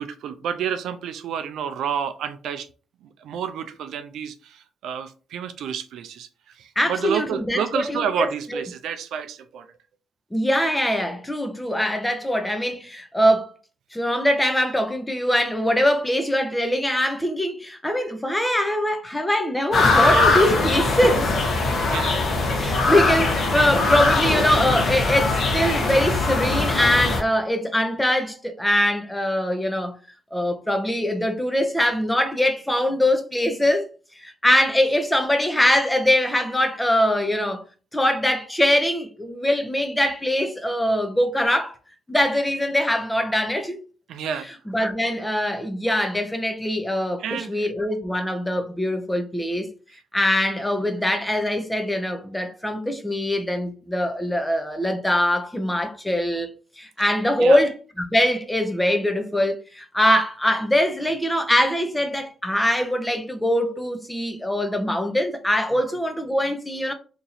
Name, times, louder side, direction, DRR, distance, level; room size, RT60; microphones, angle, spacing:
voice 1, 0.0-2.7 3.0-9.7 21.7-22.2 44.1-44.5 47.2-47.6 57.4-57.6, right 8 dB, 75° right, 0.4 m, -30 dB
voice 2, 6.8-8.6 10.3-13.5 13.9-21.3 22.6-30.0 30.3-33.9 34.2-37.6 37.9-41.8 42.1-43.8 44.7-49.7 50.1-57.7 58.1-66.9, left 1 dB, 10° left, 0.7 m, -22 dB
sound 1, 19.7-27.2, left 2 dB, 55° left, 1.0 m, -21 dB
2.9 x 2.6 x 3.9 m
cardioid pair, 90°, 0 cm